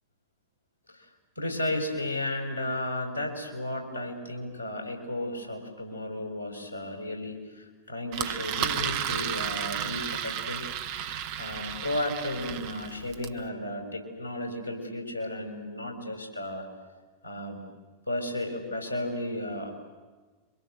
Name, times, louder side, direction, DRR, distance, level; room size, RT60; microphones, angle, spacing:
voice 1, 1.4-10.7 11.4-16.7 17.2-17.6 18.1-19.7, left 1 dB, 85° right, 3 dB, 6.1 m, -34 dB
Engine, 8.1-13.4, right 9 dB, 45° right, 1.4 m, -33 dB
27.5 x 25.0 x 8.0 m, 1.3 s
figure-of-eight pair, 90°, 0 cm